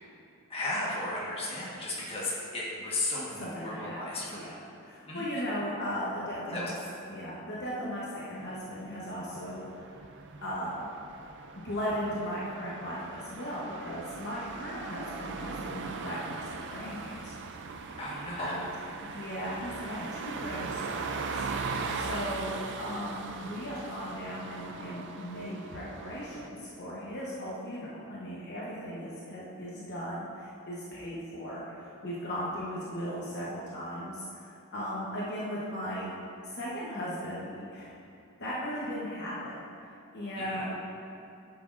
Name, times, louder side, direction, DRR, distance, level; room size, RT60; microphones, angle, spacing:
voice 1, 0.5-4.4 5.1-5.3 6.5-6.7 18.0-18.6 22.0-22.3 40.3-40.6, left 2 dB, 25° left, -6 dB, 1.4 m, -35 dB
voice 2, 3.4-6.7 7.1-9.9 10.4-10.9 11.5-17.4 17.8-17.9 18.4-18.6 19.1-21.7 21.9-36.1 36.4-37.9 38.4-39.7 40.1-40.8, equal, 50° left, -7 dB, 1.0 m, -37 dB
sound 1, 8.4-26.5, right 4 dB, 55° right, 0.4 m, -40 dB
10.0 x 6.1 x 2.5 m, 2.7 s
head